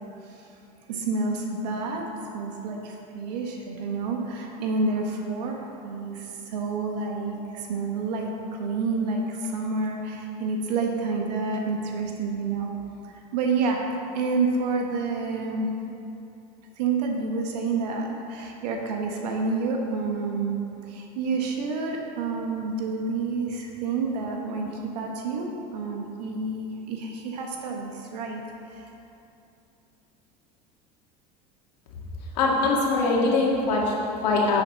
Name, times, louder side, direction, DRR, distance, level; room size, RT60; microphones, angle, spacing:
voice 1, 0.9-12.7 13.0-13.8 14.1-15.7 16.8-20.6 20.9-28.4 28.7-28.9, right 4 dB, 85° right, 1 dB, 1.1 m, -29 dB
voice 2, 32.3-34.6, left 3 dB, 85° left, -3 dB, 2.0 m, -22 dB
10.0 x 7.2 x 4.1 m, 2.8 s
supercardioid pair, 105°, 20 cm